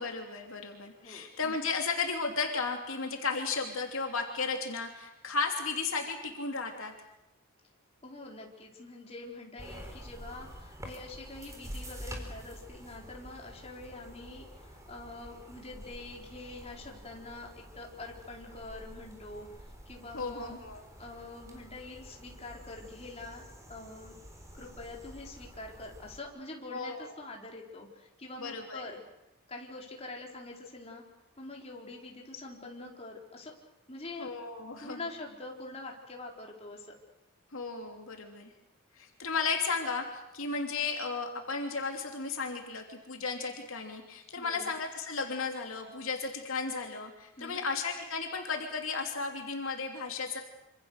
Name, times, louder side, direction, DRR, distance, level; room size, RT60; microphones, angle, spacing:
voice 1, 0.0-6.9 20.1-20.8 26.7-27.1 28.4-28.9 34.2-35.1 37.5-38.5 39.0-50.4, left 4 dB, 65° left, 2 dB, 3.0 m, -34 dB
voice 2, 1.0-1.3 8.0-20.5 21.0-23.4 23.7-24.1 24.5-29.0 29.5-31.0 31.4-33.5 33.9-34.3 34.8-36.9 44.4-44.7 47.4-47.6, left 2 dB, 30° left, 0 dB, 4.2 m, -45 dB
sound 1, 9.6-26.2, equal, 15° right, 4.2 m, -48 dB
26.5 x 26.5 x 6.6 m, 0.90 s
head